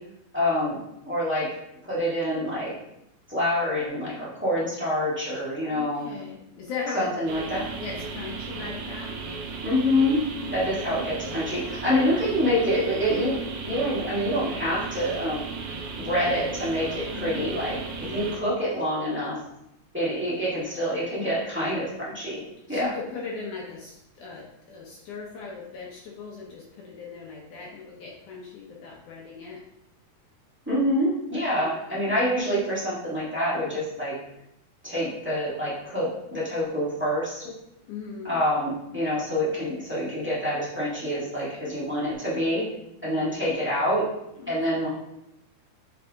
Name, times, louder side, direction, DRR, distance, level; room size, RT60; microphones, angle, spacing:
voice 1, 0.3-0.8 1.0-1.5 1.8-2.7 3.3-6.0 6.9-7.6 9.6-10.2 10.5-15.4 15.9-17.8 18.1-19.4 19.9-22.4 22.7-22.9 30.7-34.1 34.8-37.5 38.2-42.7 43.0-44.0 44.5-44.9, equal, 10° right, -9 dB, 0.6 m, -26 dB
voice 2, 5.7-7.1 7.7-9.2 10.4-10.6 17.1-17.4 18.0-18.3 22.7-29.6 31.6-31.7 37.9-38.4 41.1-41.6 43.0-43.5 44.4-44.5 44.8-44.9, left 5 dB, 70° left, -2 dB, 2.1 m, -38 dB
sound 1, 7.3-18.4, right 4 dB, 70° right, 2.1 m, -35 dB
7.4 x 4.1 x 3.7 m, 0.81 s
omnidirectional pair, 4.3 m